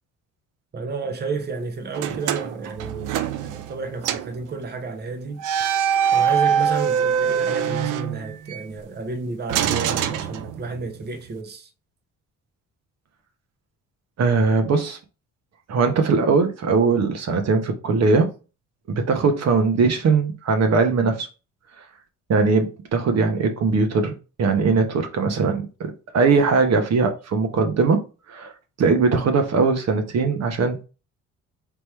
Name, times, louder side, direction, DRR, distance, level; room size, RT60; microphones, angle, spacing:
voice 1, 0.7-5.4 6.1-11.7, right 4 dB, 35° right, 0.8 m, -31 dB
sound 1, 1.9-3.8 4.0-4.4 5.4-8.6 9.5-10.9, right 8 dB, 90° right, 0.6 m, -23 dB
voice 2, 14.2-15.0 15.7-18.3 18.9-21.3 22.3-24.1 24.4-28.0 28.3-28.5 28.8-30.8, right 4 dB, 60° right, 0.9 m, -20 dB
3.6 x 3.0 x 4.4 m
cardioid pair, 90°, 30 cm